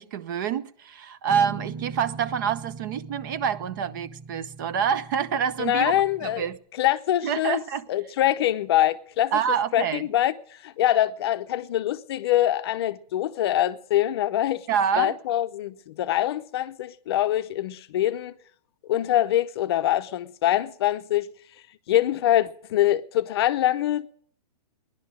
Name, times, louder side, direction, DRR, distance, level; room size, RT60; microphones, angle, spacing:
voice 1, 0.0-6.6 7.2-7.9 9.3-10.0 14.7-15.2, right 8 dB, 30° right, 0.6 m, -27 dB
Guitar, 1.3-6.5, right 4 dB, 5° right, 1.5 m, -41 dB
voice 2, 5.6-6.5 6.8-7.6 7.9-10.3 10.6-14.7 15.0-18.3 18.9-21.3 21.9-24.1, left 13 dB, 35° left, 0.6 m, -24 dB
17.0 x 11.5 x 6.2 m
hypercardioid pair, 165°, 21 cm